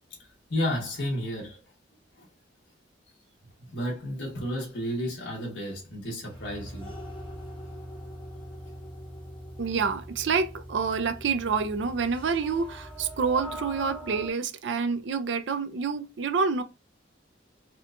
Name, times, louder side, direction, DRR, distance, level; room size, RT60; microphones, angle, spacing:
voice 1, 0.5-1.6 2.2-2.3 3.6-6.9, equal, 75° left, 1.5 m, -32 dB
sound 1, 6.3-14.3, equal, 25° left, 1.2 m, -42 dB
voice 2, 9.6-16.6, right 5 dB, 75° right, 0.5 m, -28 dB
4.3 x 2.3 x 2.5 m
head